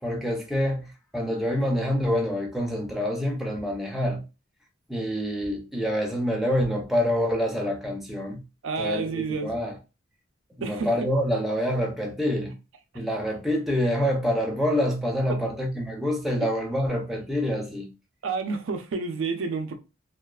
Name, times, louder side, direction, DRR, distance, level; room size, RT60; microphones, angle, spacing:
voice 1, 0.0-4.2 4.9-8.4 8.8-9.8 10.6-12.5 12.9-17.9, equal, ahead, 0.5 m, -26 dB
voice 2, 8.6-9.5 10.6-10.9 18.2-19.7, right 4 dB, 85° right, 0.5 m, -29 dB
2.4 x 2.3 x 2.2 m
head